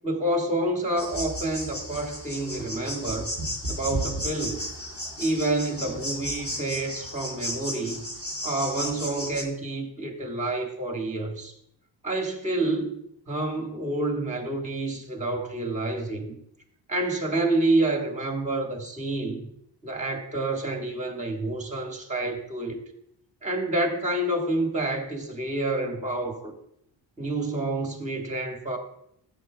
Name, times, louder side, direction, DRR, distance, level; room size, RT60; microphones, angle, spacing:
voice 1, 0.0-3.3 3.7-4.6 5.2-8.1 8.4-11.5 12.0-13.0 13.3-16.3 16.9-19.5 19.8-22.8 23.4-26.5 27.2-28.8, right 2 dB, 15° right, 3 dB, 1.6 m, -28 dB
sound 1, 1.0-9.4, equal, 30° left, 2.6 m, -34 dB
14.0 x 8.2 x 2.3 m, 0.71 s
cardioid pair, 115°, 44 cm